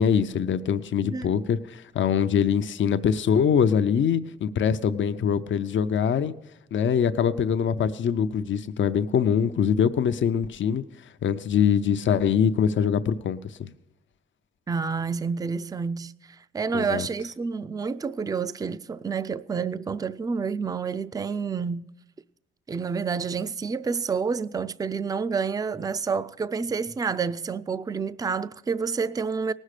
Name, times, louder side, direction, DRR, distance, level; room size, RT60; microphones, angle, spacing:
voice 1, 0.0-6.3 6.7-10.8 11.2-13.7 16.7-17.1, left 7 dB, 80° left, 0.6 m, -23 dB
voice 2, 14.7-21.8 22.7-29.5, right 5 dB, 20° right, 0.3 m, -29 dB
19.0 x 6.3 x 6.6 m
wide cardioid pair, 100°, 19 cm